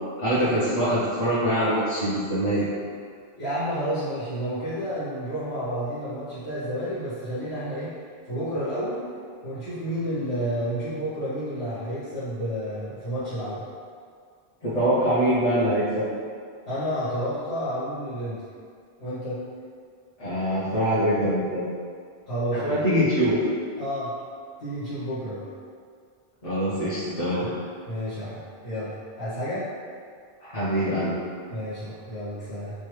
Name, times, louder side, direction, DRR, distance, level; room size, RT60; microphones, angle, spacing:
voice 1, 0.2-2.6 14.6-16.1 20.2-21.7 22.5-23.4 26.4-27.5 30.4-31.1, equal, 40° left, -13 dB, 0.8 m, -24 dB
voice 2, 3.4-7.9 8.2-9.1 9.4-13.6 16.6-18.4 19.0-19.4 22.3-22.8 23.8-24.1 24.6-25.5 27.4-27.5 27.9-29.7 31.5-32.7, equal, 85° left, -13 dB, 1.3 m, -30 dB
3.2 x 2.3 x 3.1 m, 2.1 s
omnidirectional pair, 1.1 m